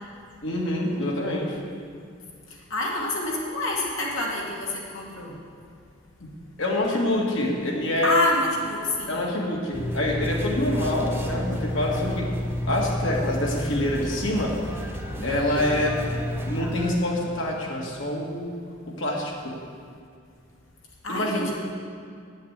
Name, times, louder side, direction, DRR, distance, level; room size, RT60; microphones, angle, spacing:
voice 1, 0.4-1.6 6.2-6.3 6.6-8.3 9.1-12.3 12.7-14.9 15.2-16.0 16.4-18.6 18.9-19.6 21.1-21.5, left 1 dB, 65° left, -2 dB, 2.0 m, -26 dB
voice 2, 2.5-5.4 8.0-9.2 15.2-15.5 21.0-21.5, left 2 dB, 90° left, -4 dB, 2.5 m, -27 dB
sound 1, 9.7-16.9, left 1 dB, 10° right, 1.0 m, -30 dB
8.6 x 8.4 x 8.2 m, 2.2 s
head